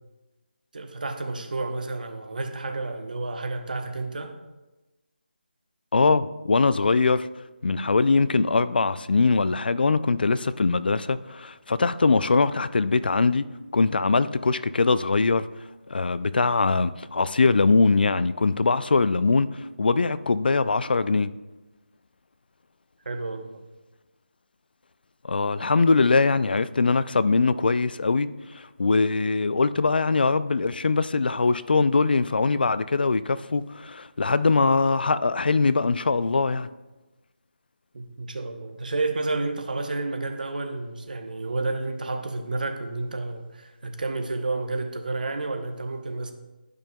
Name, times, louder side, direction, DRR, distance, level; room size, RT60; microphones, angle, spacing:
voice 1, 0.7-4.4 23.0-23.6 37.9-46.3, right 3 dB, 50° right, 0.8 m, -30 dB
voice 2, 5.9-7.3 7.6-13.5 13.7-15.5 15.9-21.3 25.2-28.3 28.5-36.7, left 4 dB, 60° left, 0.3 m, -22 dB
12.0 x 5.3 x 2.3 m
figure-of-eight pair, 170°, 6 cm